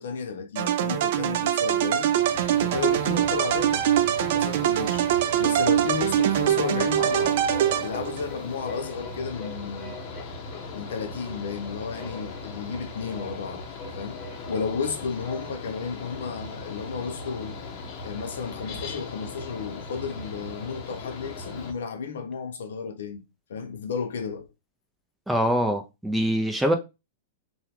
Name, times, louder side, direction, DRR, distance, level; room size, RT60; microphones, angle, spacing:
voice 1, 0.0-3.9 4.2-5.1 5.4-7.4 7.8-10.1 10.7-13.6 14.0-17.6 18.0-23.2 23.5-24.5, left 5 dB, 80° left, 0.7 m, -33 dB
sound 1, 0.6-8.3, right 11 dB, 60° right, 0.4 m, -23 dB
Mechanical fan, 2.1-21.7, left 3 dB, 40° left, 0.7 m, -39 dB
sound 2, 7.5-15.7, left 2 dB, 15° left, 1.2 m, -43 dB
voice 2, 25.3-26.7, equal, 5° right, 0.5 m, -24 dB
2.9 x 2.2 x 3.5 m
hypercardioid pair, 145°, 0 cm